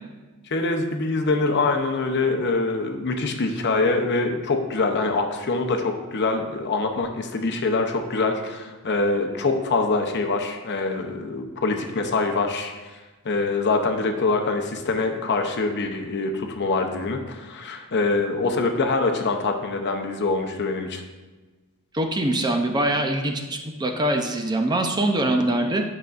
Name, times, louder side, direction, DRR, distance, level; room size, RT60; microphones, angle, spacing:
voice 1, 0.5-12.7 13.2-21.0, left 3 dB, 55° left, 4 dB, 0.7 m, -24 dB
voice 2, 21.9-25.8, right 1 dB, 20° right, 4 dB, 0.5 m, -23 dB
9.3 x 5.9 x 2.5 m, 1.2 s
head